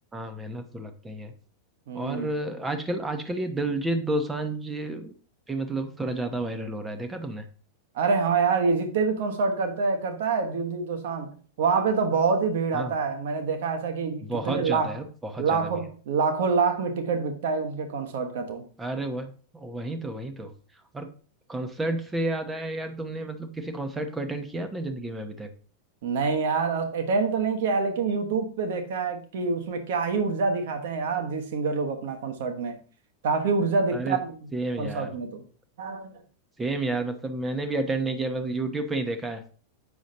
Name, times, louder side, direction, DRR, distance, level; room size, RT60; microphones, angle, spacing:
voice 1, 0.1-1.3 1.9-5.1 5.5-7.4 12.7-12.9 14.2-15.7 18.8-20.5 20.9-21.1 21.5-25.5 33.9-34.2 34.5-35.1 36.6-39.4, right 2 dB, 10° right, 1.0 m, -31 dB
voice 2, 1.9-2.3 7.9-14.9 15.4-18.6 26.0-32.7 33.2-34.4 34.8-35.4 35.8-36.1, right 4 dB, 55° right, 1.4 m, -26 dB
8.4 x 6.2 x 2.8 m
figure-of-eight pair, 90°, 0 cm